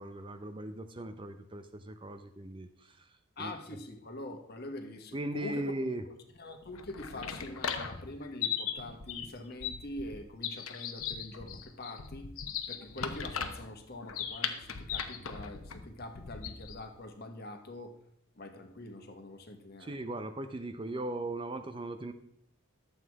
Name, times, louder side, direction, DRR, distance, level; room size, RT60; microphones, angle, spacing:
voice 1, 0.0-3.1 3.4-3.5 5.1-6.0 19.8-22.1, right 1 dB, 25° right, 8 dB, 0.6 m, -38 dB
voice 2, 3.4-5.7 6.1-12.3 12.7-17.9 18.3-20.0, left 1 dB, 50° left, 5 dB, 1.4 m, -44 dB
sound 1, 6.6-16.9, left 7 dB, 80° left, 1.0 m, -38 dB
12.0 x 7.9 x 4.7 m, 0.71 s
head